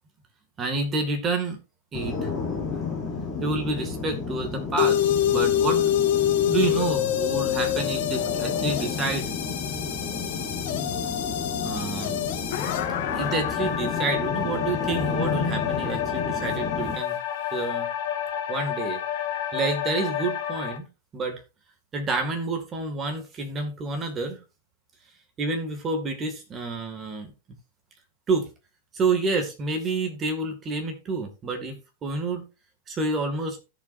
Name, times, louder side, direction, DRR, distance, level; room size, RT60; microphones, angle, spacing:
voice 1, 0.6-1.6 1.9-2.3 3.4-6.1 6.5-9.3 11.6-12.2 13.2-17.2 17.5-17.9 18.5-19.0 19.5-20.9 21.1-21.4 21.9-24.4 25.4-27.3 28.3-28.5 28.9-32.5 32.9-33.6, right 3 dB, 20° right, 2.1 m, -29 dB
sound 1, 1.9-16.9, left 4 dB, 10° left, 3.3 m, -32 dB
sound 2, 4.8-20.8, left 10 dB, 55° left, 1.8 m, -27 dB
16.0 x 7.0 x 2.7 m
supercardioid pair, 165°, 0 cm